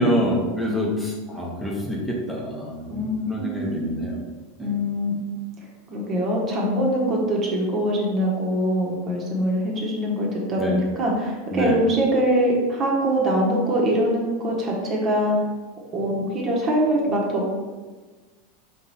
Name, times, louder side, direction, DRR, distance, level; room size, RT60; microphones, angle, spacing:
voice 1, 0.0-4.2 4.6-4.7 10.6-10.8 11.5-11.8, equal, 5° left, -3 dB, 1.0 m, -26 dB
voice 2, 0.7-1.0 2.9-3.8 4.6-5.1 5.9-15.4 15.9-17.5, equal, 35° right, -2 dB, 1.1 m, -23 dB
3.8 x 3.1 x 4.1 m, 1.3 s
hypercardioid pair, 90°, 0 cm